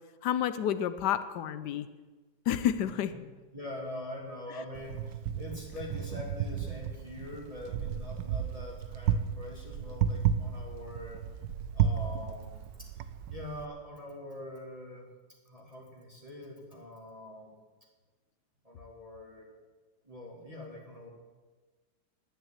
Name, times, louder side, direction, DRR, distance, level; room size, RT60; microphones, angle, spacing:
voice 1, 0.2-1.9 2.5-3.2, left 10 dB, 70° left, 13 dB, 1.2 m, -29 dB
voice 2, 2.9-3.2 3.5-11.3 11.7-12.9 13.3-15.1 15.5-17.5 18.6-19.5 20.0-21.1, left 1 dB, 20° right, -3 dB, 2.2 m, -44 dB
Wind, 4.7-13.7, right 8 dB, 80° right, 1.3 m, -33 dB
10.0 x 9.4 x 8.9 m, 1.3 s
omnidirectional pair, 2.0 m